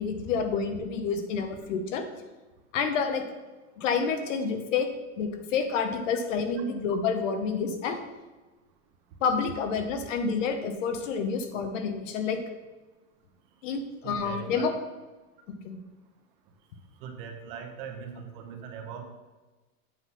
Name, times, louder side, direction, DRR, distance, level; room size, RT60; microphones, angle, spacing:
voice 1, 0.0-2.1 2.7-3.2 3.8-4.9 5.2-8.0 9.2-12.4 13.6-14.7 15.5-15.8, left 5 dB, 60° left, 7 dB, 1.1 m, -29 dB
voice 2, 14.0-14.7 17.0-19.0, right 6 dB, 40° right, 4 dB, 0.9 m, -40 dB
7.9 x 3.8 x 5.6 m, 1.2 s
supercardioid pair, 170°, 42 cm